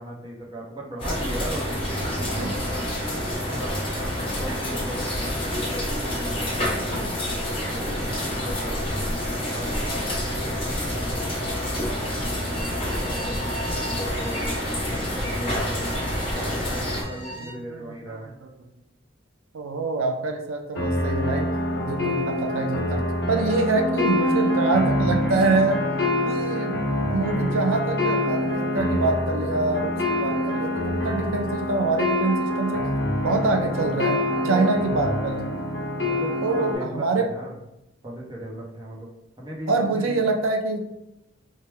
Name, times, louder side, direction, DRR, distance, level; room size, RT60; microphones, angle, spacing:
voice 1, 0.0-2.9 3.4-7.2 7.8-9.0 9.5-14.6 14.9-18.3 23.3-23.5 34.2-35.2 36.0-37.6 38.0-39.1 39.4-40.2, right 1 dB, 20° right, -3 dB, 0.7 m, -37 dB
sound 1, 1.0-17.0, left 1 dB, 25° left, 1.0 m, -28 dB
Bowed string instrument, 12.3-17.6, equal, 5° left, 1.1 m, -40 dB
voice 2, 17.4-18.2 19.5-21.5 21.8-23.0 23.3-25.8 26.3-26.8 27.1-32.9 33.2-35.5 36.4-37.3 39.7-40.8, right 3 dB, 80° right, 3 dB, 0.4 m, -25 dB
sound 2, 20.8-36.8, left 1 dB, 60° left, 0.9 m, -25 dB
3.3 x 2.1 x 4.3 m, 0.88 s
head